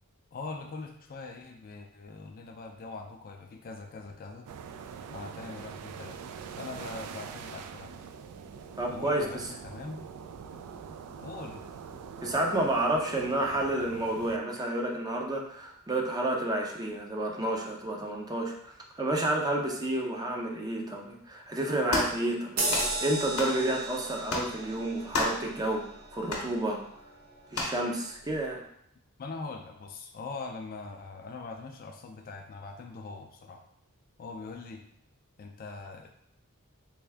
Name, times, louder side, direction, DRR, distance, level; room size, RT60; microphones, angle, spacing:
voice 1, 0.3-4.5 5.1-6.2 6.6-8.1 8.9-10.0 11.2-11.6 29.2-33.6 34.2-34.8 35.4-36.1, left 3 dB, 40° left, 3 dB, 0.4 m, -42 dB
sound 1, 4.5-14.4, right 6 dB, 85° right, 0.3 m, -44 dB
voice 2, 8.8-9.5 12.2-25.8 26.1-26.8 27.5-28.6, right 1 dB, 15° right, 0 dB, 0.5 m, -30 dB
sound 2, 21.9-22.2 22.7-22.9 23.4-23.6 24.3-24.5 25.1-25.5 26.3-26.5 27.5-27.8, left 2 dB, 70° left, 0.8 m, -31 dB
sound 3, 22.6-27.5 28.0-28.1, right 2 dB, 45° right, 0.8 m, -35 dB
3.4 x 2.6 x 3.3 m, 0.69 s
head